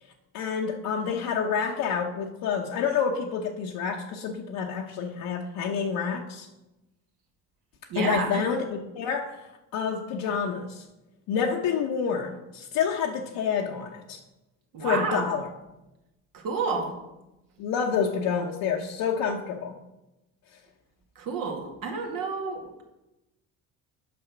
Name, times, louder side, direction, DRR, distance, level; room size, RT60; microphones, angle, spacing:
voice 1, 0.3-6.5 8.0-9.4 9.7-10.8 11.3-14.2 14.8-15.5 17.6-19.7, left 6 dB, 70° left, 0 dB, 1.0 m, -28 dB
voice 2, 7.9-8.5 14.7-15.3 16.3-17.0 21.2-22.8, right 4 dB, 70° right, 2 dB, 2.0 m, -30 dB
8.4 x 5.5 x 6.0 m, 0.99 s
cardioid pair, 105°, 35 cm